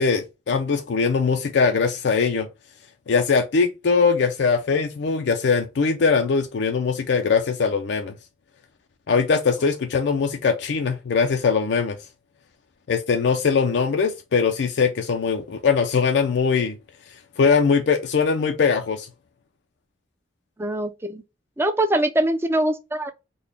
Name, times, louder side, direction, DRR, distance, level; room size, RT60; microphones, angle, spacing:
voice 1, 0.0-2.5 3.1-8.1 9.1-12.0 12.9-16.8 17.4-19.1, left 5 dB, 75° left, 0.4 m, -21 dB
voice 2, 20.6-21.2 21.6-23.1, right 1 dB, 15° right, 0.4 m, -23 dB
3.8 x 2.2 x 3.2 m
head